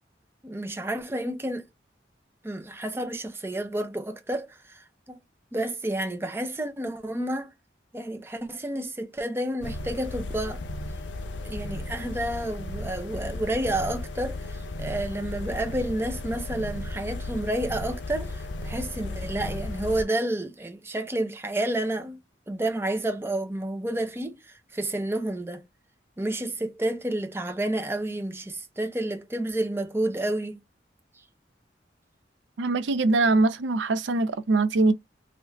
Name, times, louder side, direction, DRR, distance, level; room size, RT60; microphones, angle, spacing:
voice 1, 0.4-1.7 2.4-5.2 5.5-7.5 7.9-10.6 11.4-22.2 22.5-25.7 26.2-30.6, right 1 dB, 15° right, 0.5 m, -30 dB
sound 1, 9.6-20.0, left 2 dB, 85° left, 0.5 m, -35 dB
voice 2, 32.6-34.9, right 3 dB, 85° right, 0.5 m, -22 dB
3.3 x 2.5 x 2.2 m
head